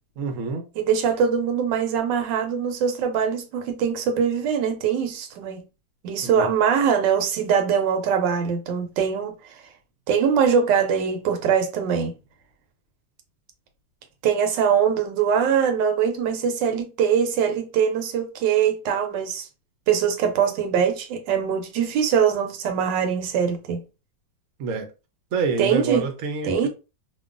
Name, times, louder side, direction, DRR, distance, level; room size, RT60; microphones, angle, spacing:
voice 1, 0.2-0.7 6.2-6.5 24.6-24.9 25.3-26.7, right 4 dB, 65° right, 0.8 m, -27 dB
voice 2, 0.8-5.6 6.0-9.4 10.1-12.1 14.2-19.5 19.9-23.8 25.6-26.1 26.4-26.7, right 7 dB, 85° right, 1.3 m, -22 dB
2.9 x 2.2 x 2.4 m
omnidirectional pair, 1.9 m